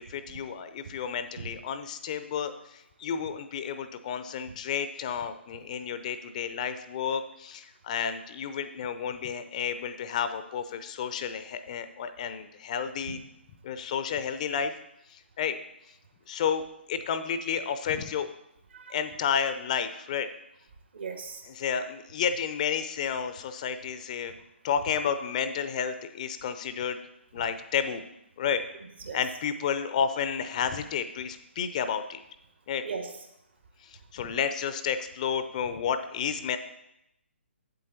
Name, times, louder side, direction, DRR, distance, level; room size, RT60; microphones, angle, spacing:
voice 1, 0.0-13.2 13.6-14.7 15.1-15.6 16.3-18.3 18.9-20.3 21.5-24.3 24.6-27.0 27.3-28.0 28.4-28.6 29.1-32.2 32.7-32.8 33.8-36.6, left 7 dB, 35° left, 11 dB, 0.6 m, -31 dB
voice 2, 20.9-21.4 29.0-29.2 32.8-33.1, right 5 dB, 60° right, 4 dB, 1.8 m, -37 dB
8.6 x 7.7 x 4.3 m, 0.81 s
figure-of-eight pair, 130°, 7 cm